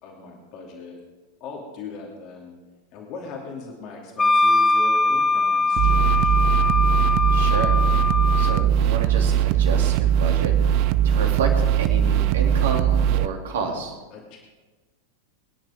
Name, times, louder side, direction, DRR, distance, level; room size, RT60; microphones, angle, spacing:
voice 1, 0.0-1.0 1.4-2.5 2.9-6.4 14.1-14.4, left 4 dB, 40° left, -1 dB, 2.7 m, -39 dB
Wind instrument woodwind instrument, 4.2-8.7, left 3 dB, 15° left, 0.4 m, -21 dB
sound 1, 5.8-13.3, right 10 dB, 45° right, 0.6 m, -20 dB
voice 2, 7.3-7.8 8.4-10.6 11.0-13.9, right 4 dB, 60° right, 1 dB, 2.8 m, -30 dB
24.0 x 10.5 x 3.7 m, 1.3 s
figure-of-eight pair, 90°, 0 cm